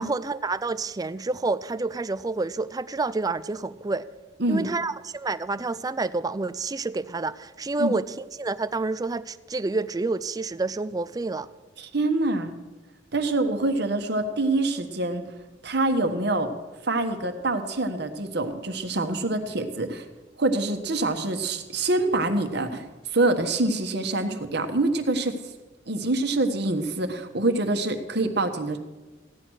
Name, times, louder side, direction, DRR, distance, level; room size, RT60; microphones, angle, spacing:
voice 1, 0.0-4.1 4.5-8.1 8.4-11.5, right 3 dB, 20° right, 14 dB, 0.4 m, -28 dB
voice 2, 4.4-4.7 7.8-7.9 11.8-12.5 13.1-15.2 15.6-16.5 16.9-20.0 20.4-22.8 23.1-25.3 25.9-28.8, right 2 dB, 60° right, 6 dB, 1.3 m, -25 dB
15.5 x 10.5 x 6.4 m, 1.2 s
head